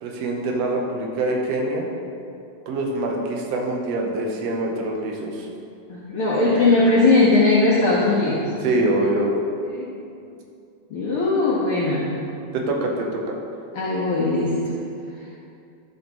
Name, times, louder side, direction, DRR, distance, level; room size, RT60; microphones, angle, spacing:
voice 1, 0.0-1.9 2.7-5.5 8.6-9.4 12.5-13.4, right 2 dB, 70° right, 0 dB, 2.0 m, -24 dB
voice 2, 5.9-8.5 9.7-10.0 10.9-12.1 13.7-14.6, left 2 dB, 65° left, -6 dB, 1.4 m, -19 dB
12.0 x 6.3 x 3.0 m, 2.5 s
omnidirectional pair, 3.4 m